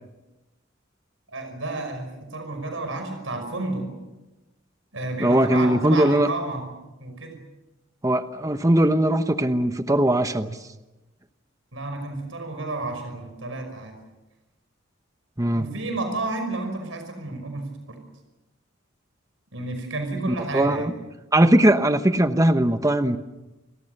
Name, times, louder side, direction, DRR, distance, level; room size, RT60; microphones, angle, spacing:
voice 1, 1.3-3.9 4.9-6.7 7.0-7.4 11.7-14.0 15.5-18.0 19.5-20.9, right 2 dB, 75° right, 5 dB, 5.5 m, -31 dB
voice 2, 5.2-6.3 8.0-10.6 15.4-15.7 20.2-20.9 21.3-23.2, right 1 dB, 15° right, 9 dB, 1.0 m, -20 dB
30.0 x 23.0 x 6.7 m, 1.1 s
head